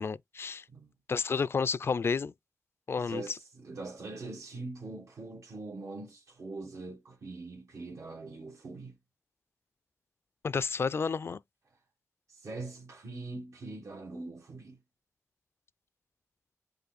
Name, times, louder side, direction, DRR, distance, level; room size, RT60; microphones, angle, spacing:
voice 1, 0.0-0.6 1.1-2.3 2.9-3.2 10.4-11.4, left 5 dB, 50° left, 0.3 m, -31 dB
voice 2, 3.0-9.0 11.7-11.8 12.3-14.8, right 3 dB, 75° right, 1.4 m, -43 dB
5.2 x 2.4 x 4.0 m
wide cardioid pair, 100°, 5 cm